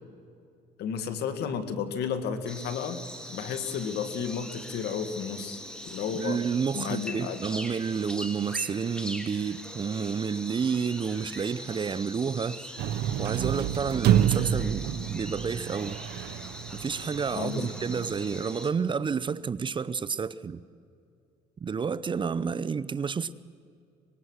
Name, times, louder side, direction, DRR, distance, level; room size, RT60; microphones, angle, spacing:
voice 1, 0.8-3.0 3.3-6.4 6.7-7.4 17.4-17.7, left 7 dB, 75° left, 1.9 m, -32 dB
sound 1, 2.5-18.7, equal, 5° left, 2.1 m, -42 dB
voice 2, 6.1-12.7 13.2-16.0 16.7-20.6 21.6-23.3, right 6 dB, 30° right, 0.6 m, -30 dB
sound 2, 12.8-18.2, right 10 dB, 80° right, 0.9 m, -29 dB
24.5 x 21.0 x 6.4 m
cardioid pair, 110°, 17 cm